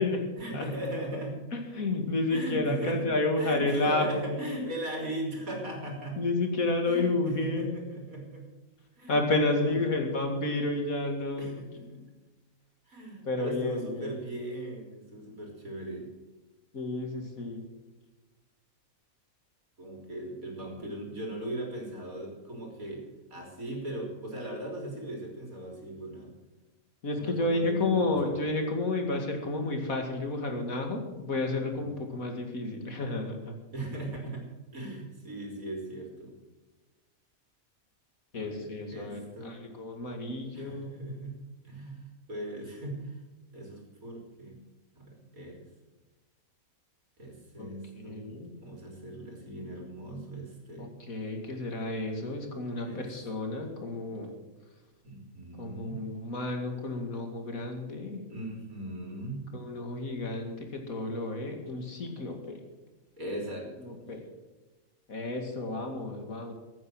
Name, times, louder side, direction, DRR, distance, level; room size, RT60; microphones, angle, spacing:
voice 1, 0.4-1.4 2.3-6.2 6.8-8.5 9.0-9.2 9.6-10.0 11.4-12.0 12.9-16.1 19.8-26.4 27.2-28.3 31.5-31.9 33.7-34.4 34.7-36.3 38.3-39.6 40.5-41.4 41.6-43.2 43.5-44.7 45.0-45.7 47.2-50.9 52.8-53.1 55.0-56.0 58.3-59.5 63.2-64.1, right 1 dB, 75° right, 0 dB, 4.0 m, -39 dB
voice 2, 1.5-4.3 6.2-7.7 9.1-11.6 13.2-14.2 16.7-17.6 27.0-33.6 38.3-40.9 47.6-47.7 48.0-48.5 50.8-54.4 55.6-58.2 59.5-62.6 63.8-64.2 65.1-66.5, left 2 dB, 75° left, 4 dB, 2.7 m, -31 dB
15.0 x 9.1 x 7.7 m, 1.2 s
omnidirectional pair, 1.5 m